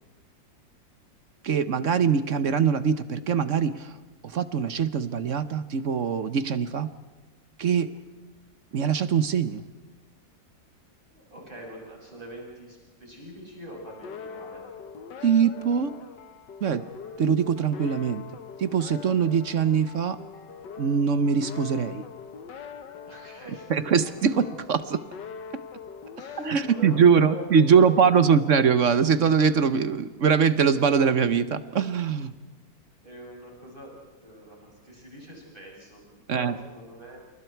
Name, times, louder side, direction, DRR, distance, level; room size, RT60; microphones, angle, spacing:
voice 1, 1.4-3.9 4.2-6.9 7.6-7.9 8.7-9.6 15.2-15.9 16.6-16.8 17.2-18.2 18.6-20.2 20.8-22.0 23.7-25.0 26.4-32.3 36.3-36.5, right 6 dB, 50° right, 12 dB, 1.0 m, -22 dB
voice 2, 11.1-14.7 23.1-23.7 26.2-28.6 33.0-33.9 34.2-37.2, right 1 dB, 25° right, -2 dB, 7.5 m, -44 dB
sound 1, 13.7-29.1, left 6 dB, 70° left, 1.9 m, -43 dB
28.5 x 28.5 x 4.6 m, 1.2 s
omnidirectional pair, 2.0 m